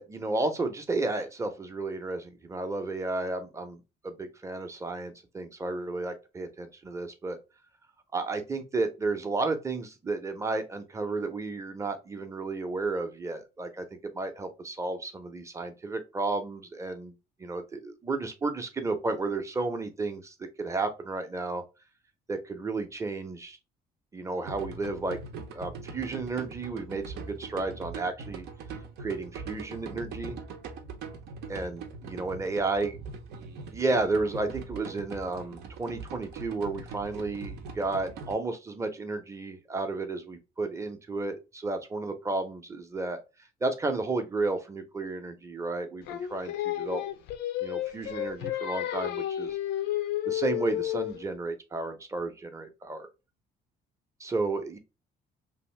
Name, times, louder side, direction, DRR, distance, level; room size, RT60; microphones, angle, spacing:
voice 1, 0.0-7.4 8.1-13.9 14.1-17.1 17.4-21.6 22.3-23.6 24.1-25.2 25.5-28.5 29.0-30.4 31.5-33.0 33.7-43.2 43.6-47.0 47.6-49.6 50.3-53.1 54.2-54.8, right 3 dB, 15° right, 7 dB, 0.6 m, -32 dB
sound 1, 24.5-38.3, right 4 dB, 80° right, 0.7 m, -42 dB
Singing, 46.1-51.3, left 12 dB, 80° left, 0.5 m, -31 dB
2.7 x 2.5 x 3.1 m, 0.27 s
cardioid pair, 110°, 17 cm